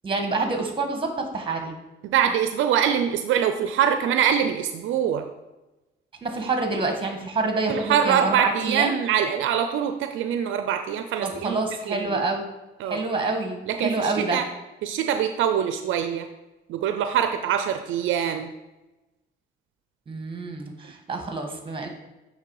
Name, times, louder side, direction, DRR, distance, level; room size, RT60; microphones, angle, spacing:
voice 1, 0.0-1.8 6.2-8.9 11.2-12.5 12.8-14.4 20.1-21.9, right 3 dB, 25° right, 4 dB, 1.5 m, -27 dB
voice 2, 2.0-5.3 7.7-11.6 11.9-12.2 12.8-13.0 13.7-14.5 14.8-16.3 16.7-18.5, right 8 dB, 80° right, 8 dB, 0.5 m, -24 dB
8.2 x 3.3 x 4.8 m, 1.1 s
cardioid pair, 90°, 20 cm